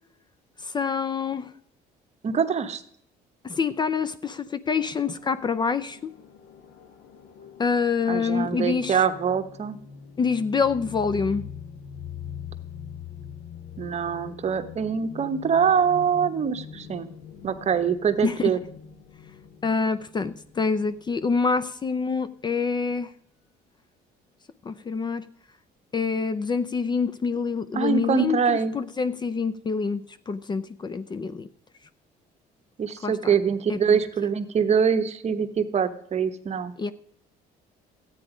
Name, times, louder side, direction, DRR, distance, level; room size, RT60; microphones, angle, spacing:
voice 1, 0.6-1.5 3.4-6.1 7.6-9.0 10.2-11.5 18.2-18.5 19.6-23.1 24.6-25.2 25.9-31.5 33.0-33.2 33.7-33.8 36.8-36.9, left 5 dB, 25° left, 14 dB, 0.5 m, -26 dB
voice 2, 2.2-2.8 8.1-9.8 13.8-17.1 17.4-18.6 27.7-28.8 32.8-36.7, right 7 dB, 40° right, 9 dB, 1.0 m, -24 dB
sound 1, 4.7-21.9, left 8 dB, 85° left, 1.2 m, -43 dB
13.0 x 9.0 x 4.9 m, 0.66 s
cardioid pair, 110°, 17 cm